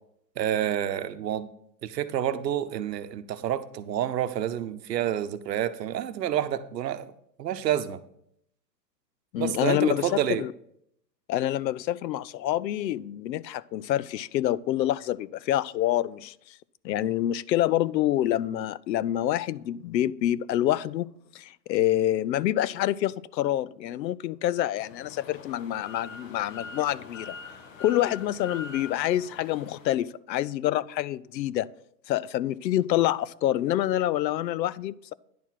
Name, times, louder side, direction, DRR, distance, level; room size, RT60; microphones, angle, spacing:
voice 1, 0.4-1.5 1.8-7.1 7.4-8.0 9.4-10.4, right 11 dB, 75° right, 0.9 m, -28 dB
voice 2, 9.3-10.5 11.3-16.6 16.8-27.4 27.8-31.7 32.1-35.1, left 13 dB, 85° left, 0.6 m, -27 dB
sound 1, 24.7-30.0, left 4 dB, 50° left, 1.3 m, -44 dB
10.0 x 4.6 x 5.8 m
hypercardioid pair, 165°, 50 cm